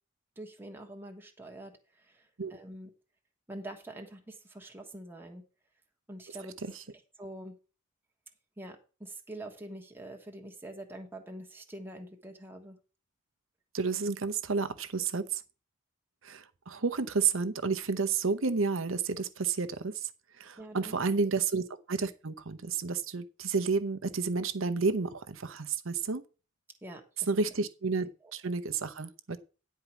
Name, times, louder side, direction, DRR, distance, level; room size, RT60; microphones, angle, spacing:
voice 1, 0.4-2.9 3.5-5.4 6.1-6.7 7.2-7.6 8.6-12.8 20.6-21.3 26.8-27.3 28.0-28.1, right 1 dB, 10° right, 1.3 m, -45 dB
voice 2, 13.7-15.4 16.2-20.1 20.4-21.6 21.9-26.2 27.3-29.4, right 4 dB, 75° right, 0.9 m, -31 dB
10.0 x 4.7 x 7.0 m
head